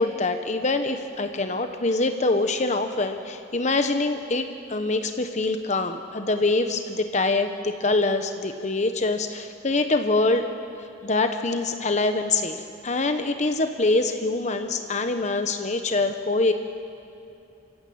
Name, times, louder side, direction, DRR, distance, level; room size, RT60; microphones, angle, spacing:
voice 1, 0.0-10.5 10.8-16.5, left 3 dB, 40° left, 7 dB, 1.0 m, -24 dB
28.0 x 15.5 x 8.6 m, 2.8 s
head